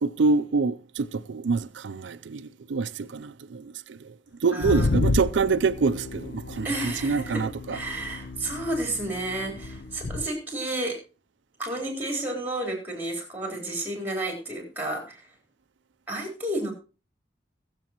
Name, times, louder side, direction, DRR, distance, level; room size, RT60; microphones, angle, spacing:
voice 1, 0.0-4.1 4.4-7.8, right 4 dB, 85° right, 0.5 m, -26 dB
voice 2, 4.5-4.9 6.6-11.0 11.6-15.3 16.1-16.7, right 1 dB, 10° right, 4.0 m, -31 dB
sound 1, 4.6-10.3, left 3 dB, 65° left, 0.6 m, -31 dB
22.0 x 7.5 x 3.0 m
head